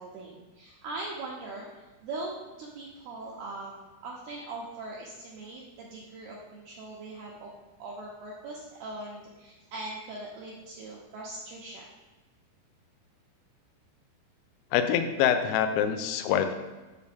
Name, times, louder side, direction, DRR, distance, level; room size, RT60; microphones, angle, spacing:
voice 1, 0.0-7.5 7.8-11.9, right 2 dB, 80° right, -3 dB, 2.4 m, -41 dB
voice 2, 14.7-16.5, left 9 dB, 80° left, 8 dB, 2.7 m, -25 dB
8.1 x 6.6 x 3.4 m, 1.2 s
omnidirectional pair, 5.6 m